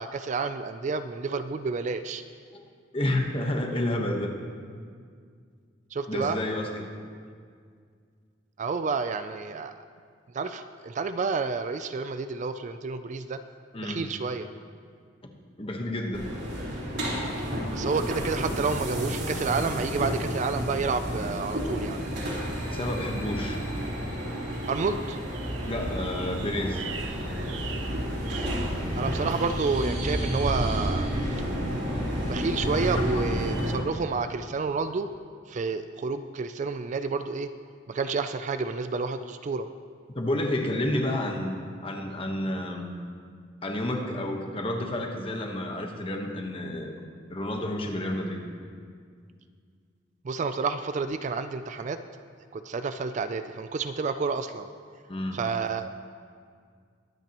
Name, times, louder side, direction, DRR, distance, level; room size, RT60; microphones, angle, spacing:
voice 1, 0.0-2.2 5.9-6.4 8.6-9.7 10.3-13.4 13.8-14.5 17.7-22.0 24.7-25.2 29.0-31.1 32.3-35.1 35.5-37.5 37.9-39.7 50.2-52.0 52.5-54.7 55.3-55.9, right 4 dB, 40° right, 10 dB, 0.4 m, -30 dB
voice 2, 2.9-4.3 6.1-6.9 13.7-14.0 15.6-16.3 22.7-23.6 25.7-26.8 33.1-33.2 40.1-42.9 43.6-46.9 47.3-48.4 55.1-55.4, left 1 dB, 30° left, 2 dB, 1.1 m, -30 dB
sound 1, 16.1-33.7, equal, 60° right, 3.2 m, -31 dB
sound 2, 24.5-29.9, right 7 dB, 75° right, 0.7 m, -44 dB
22.5 x 9.0 x 3.0 m, 2.1 s
head